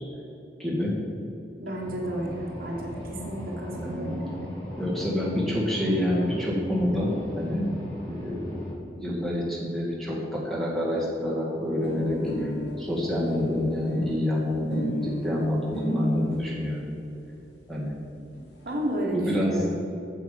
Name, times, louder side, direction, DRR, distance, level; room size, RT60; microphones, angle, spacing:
voice 1, 0.6-0.9 3.7-4.1 4.8-7.7 8.0-12.5 12.8-16.8 17.7-17.9 19.1-19.6, left 1 dB, ahead, -6 dB, 2.1 m, -27 dB
voice 2, 1.6-4.5 18.6-19.8, right 1 dB, 55° right, -1 dB, 1.3 m, -32 dB
sound 1, 1.7-8.7, equal, 30° left, 2.3 m, -39 dB
sound 2, 11.8-16.4 17.2-17.3 17.6-17.7 17.9-18.0 18.2-18.9, equal, 80° left, 2.1 m, -33 dB
7.6 x 7.5 x 5.2 m, 2.8 s
head